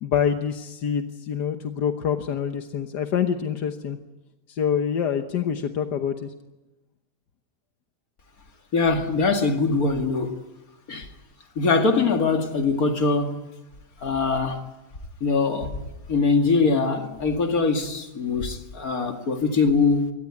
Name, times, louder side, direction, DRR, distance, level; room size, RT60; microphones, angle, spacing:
voice 1, 0.0-4.0 4.5-6.3, left 8 dB, 85° left, 6 dB, 1.7 m, -26 dB
voice 2, 8.7-10.3 10.9-11.1 11.6-13.4 14.0-14.6 15.2-15.7 16.1-20.1, left 4 dB, 60° left, 4 dB, 2.6 m, -22 dB
23.5 x 17.5 x 9.7 m, 1.0 s
omnidirectional pair, 1.7 m